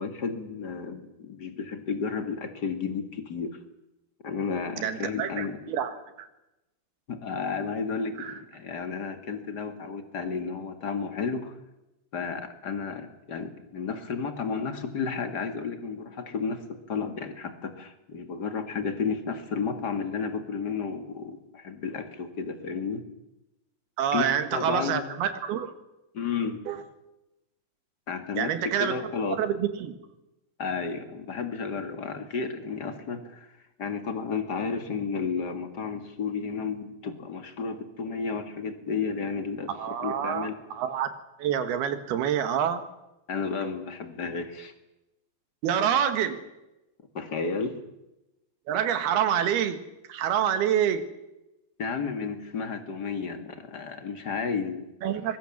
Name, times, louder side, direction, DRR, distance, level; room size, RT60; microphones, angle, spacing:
voice 1, 0.0-3.6 4.2-5.6 7.1-11.5 12.1-23.0 24.1-25.0 26.1-26.6 28.1-29.4 30.6-33.5 33.8-39.7 40.0-40.5 43.3-44.7 47.1-47.8 51.8-54.8, left 5 dB, 35° left, 7 dB, 1.9 m, -32 dB
voice 2, 4.8-6.3 8.2-8.4 24.0-25.7 26.7-26.8 28.4-29.0 29.4-30.0 39.7-41.1 41.4-42.9 45.6-46.4 48.7-49.8 50.1-51.1 55.0-55.4, right 9 dB, 85° right, 10 dB, 3.6 m, -27 dB
24.0 x 21.0 x 7.4 m, 0.95 s
omnidirectional pair, 4.4 m